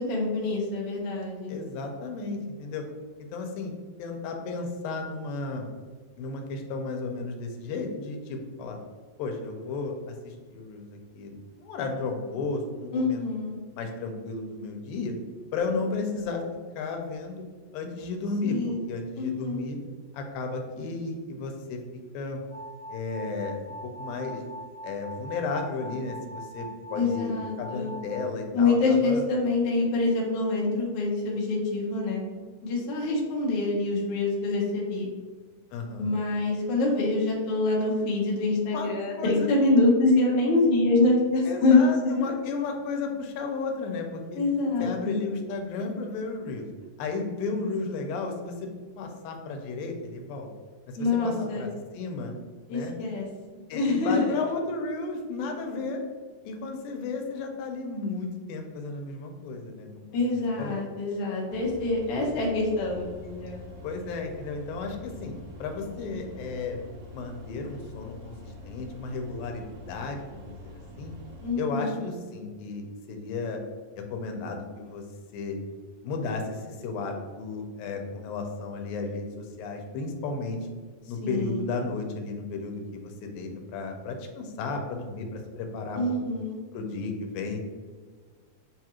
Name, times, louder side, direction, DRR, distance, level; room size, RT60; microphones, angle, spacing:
voice 1, 0.0-1.6 12.9-13.6 18.4-18.9 19.2-19.6 26.9-28.0 28.5-32.2 32.6-35.1 36.0-41.8 42.2-42.3 44.3-45.2 51.0-51.7 52.7-53.3 53.7-54.3 60.1-63.7 71.4-72.0 81.2-81.6 86.0-86.6, left 3 dB, 70° left, -3 dB, 1.4 m, -25 dB
voice 2, 1.5-2.8 3.2-3.7 4.0-5.7 6.2-8.8 9.2-13.2 13.7-15.2 15.5-16.4 16.8-17.4 17.7-18.6 18.9-19.8 20.1-21.8 22.1-22.4 22.9-23.6 23.8-24.4 24.8-29.2 35.7-36.2 38.7-38.9 39.2-39.5 41.5-44.4 44.8-46.7 47.0-50.5 50.9-51.7 51.9-52.4 52.7-52.9 53.7-56.0 56.4-60.8 63.8-65.3 65.6-66.8 67.1-70.7 71.0-71.1 71.6-73.6 74.0-75.0 75.3-75.6 76.0-80.6 81.1-86.2 86.7-87.6, left 3 dB, 85° left, 4 dB, 2.4 m, -33 dB
sound 1, 22.5-28.3, equal, 55° left, 1.8 m, -42 dB
sound 2, 61.5-71.5, left 3 dB, 75° right, 1.7 m, -45 dB
7.1 x 2.4 x 2.9 m, 1.5 s
omnidirectional pair, 4.0 m